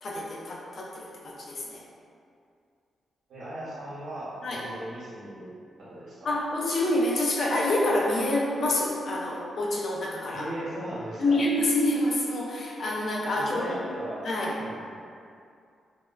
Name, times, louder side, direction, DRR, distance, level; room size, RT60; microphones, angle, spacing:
voice 1, 0.0-1.8 4.4-4.6 6.2-10.5 11.2-13.9 14.2-14.6, left 1 dB, 50° left, -3 dB, 0.4 m, -27 dB
voice 2, 3.3-5.5 5.8-6.3 10.3-11.4 13.3-14.2 14.6-15.0, right 1 dB, 75° right, -9 dB, 1.0 m, -38 dB
3.4 x 2.1 x 2.2 m, 2.4 s
wide cardioid pair, 150°, 0 cm